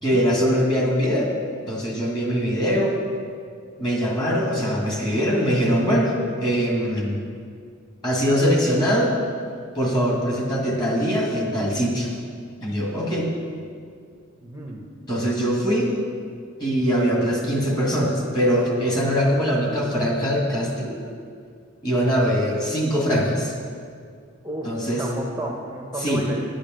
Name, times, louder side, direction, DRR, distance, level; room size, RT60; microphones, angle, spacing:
voice 1, 0.0-1.3 1.7-3.0 3.8-6.1 6.4-7.2 8.0-9.1 9.8-12.1 12.6-13.3 15.1-15.9 16.6-21.0 21.8-23.5 24.6-25.0 26.0-26.3, equal, 20° left, -2 dB, 2.1 m, -22 dB
voice 2, 14.4-14.9 15.2-15.4 24.4-26.6, right 1 dB, 10° right, -1 dB, 0.8 m, -32 dB
9.9 x 8.6 x 6.5 m, 2.2 s
head